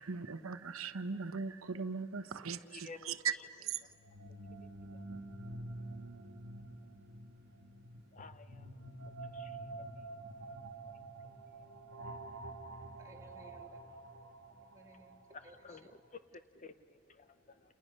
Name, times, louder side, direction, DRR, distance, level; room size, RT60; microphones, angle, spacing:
voice 1, 0.0-3.8, right 5 dB, 80° right, 10 dB, 0.9 m, -39 dB
voice 2, 2.7-3.1 8.1-8.7 9.3-9.5 15.3-16.0 16.5-17.6, left 4 dB, 35° left, 11 dB, 0.8 m, -52 dB
sound 1, 3.9-15.7, right 2 dB, 60° right, 1.5 m, -48 dB
voice 3, 13.0-15.2 15.4-15.9, right 2 dB, 15° right, -1 dB, 2.4 m, -59 dB
30.0 x 29.5 x 6.5 m, 2.5 s
head